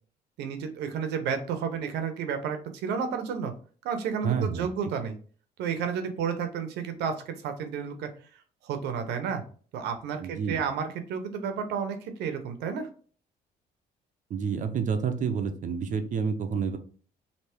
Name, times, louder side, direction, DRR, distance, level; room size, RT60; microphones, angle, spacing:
voice 1, 0.4-3.5 3.8-5.2 5.6-8.1 8.6-9.4 9.7-12.9, right 6 dB, 80° right, 7 dB, 0.9 m, -31 dB
voice 2, 4.2-4.7 10.2-10.6 14.3-16.8, right 6 dB, 50° right, 8 dB, 0.7 m, -29 dB
3.3 x 2.8 x 4.4 m, 0.43 s
cardioid pair, 110°, 17 cm